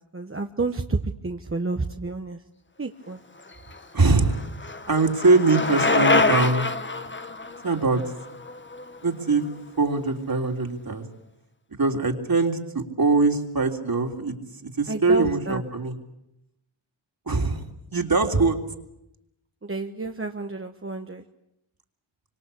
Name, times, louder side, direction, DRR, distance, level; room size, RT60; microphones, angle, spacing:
voice 1, 0.0-2.4 2.8-3.2 14.9-15.6 19.6-21.2, right 3 dB, 25° right, 5 dB, 1.3 m, -30 dB
Bicycle, 3.5-9.5, left 3 dB, 25° left, 1.4 m, -26 dB
voice 2, 3.9-4.4 4.9-6.7 7.6-8.0 9.0-9.4 9.8-11.1 11.7-14.4 14.6-16.0 17.3-17.6 17.9-18.6, right 3 dB, 45° right, 4 dB, 3.5 m, -22 dB
25.5 x 25.0 x 8.5 m, 0.85 s
wide cardioid pair, 70°, 49 cm